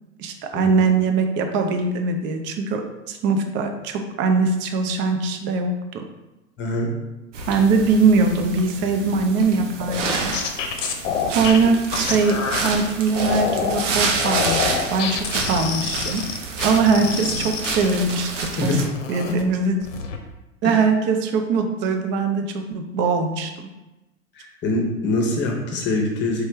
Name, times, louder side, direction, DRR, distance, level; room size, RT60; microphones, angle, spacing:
voice 1, 0.2-6.0 7.5-10.3 11.3-16.2 16.6-18.3 18.6-18.7 19.1-19.8 20.6-23.5, right 4 dB, 30° right, 5 dB, 0.5 m, -21 dB
voice 2, 6.6-7.0 16.7-16.8 18.6-18.8 20.6-20.8 24.3-26.5, left 2 dB, 30° left, 0 dB, 1.0 m, -24 dB
sound 1, 7.3-18.8, right 4 dB, 65° right, 0.8 m, -29 dB
sound 2, 9.8-12.7 13.2-13.8 14.2-18.5 18.8-19.4 19.8-20.2, left 6 dB, 70° left, 0.7 m, -27 dB
4.7 x 3.1 x 3.1 m, 1.0 s
figure-of-eight pair, 90°, 39 cm